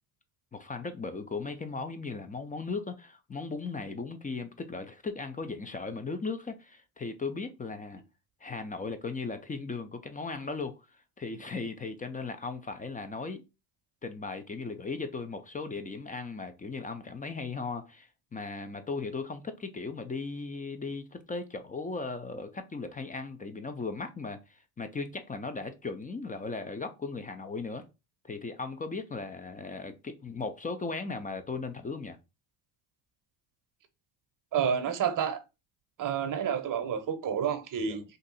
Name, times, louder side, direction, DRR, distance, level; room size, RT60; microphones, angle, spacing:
voice 1, 0.5-8.0 8.4-10.7 11.2-13.4 14.0-27.8 28.2-32.2 37.9-38.0, left 4 dB, 15° left, 0.4 m, -37 dB
voice 2, 34.5-35.4 36.0-38.0, right 7 dB, 40° right, 0.8 m, -29 dB
2.6 x 2.6 x 4.0 m
hypercardioid pair, 65°, 49 cm